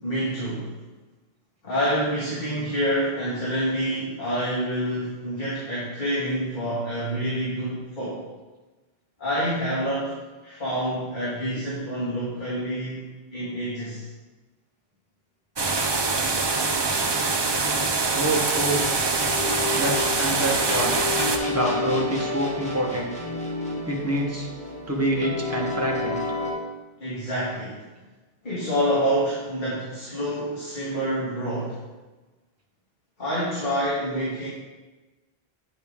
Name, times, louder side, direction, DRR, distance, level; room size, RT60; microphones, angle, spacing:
voice 1, 0.0-0.8 1.6-8.2 9.2-10.2 10.4-14.1 27.0-27.9 28.4-31.8 33.2-34.5, equal, 50° left, -8 dB, 1.9 m, -27 dB
sound 1, 15.6-21.4, right 3 dB, 35° right, 0.4 m, -24 dB
voice 2, 18.1-18.8 19.8-21.0 21.5-23.2 23.9-24.5 24.9-26.3, right 1 dB, 15° right, -1 dB, 1.0 m, -26 dB
sound 2, 18.4-26.5, left 2 dB, 5° left, 1.2 m, -30 dB
8.4 x 5.1 x 3.6 m, 1.2 s
omnidirectional pair, 1.1 m